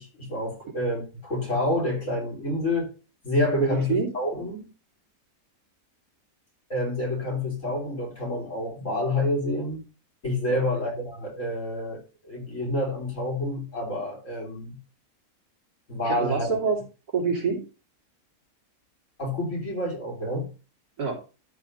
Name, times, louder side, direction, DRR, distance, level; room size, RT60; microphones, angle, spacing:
voice 1, 0.0-2.9 3.2-4.7 6.7-9.8 10.2-14.8 15.9-16.5 19.2-20.5, left 1 dB, 55° left, 4.0 m, -28 dB
voice 2, 3.6-4.1 10.5-10.6 16.0-16.8 17.1-17.6 21.0-21.2, right 5 dB, 85° right, 3.8 m, -26 dB
12.5 x 4.3 x 5.3 m
omnidirectional pair, 1.6 m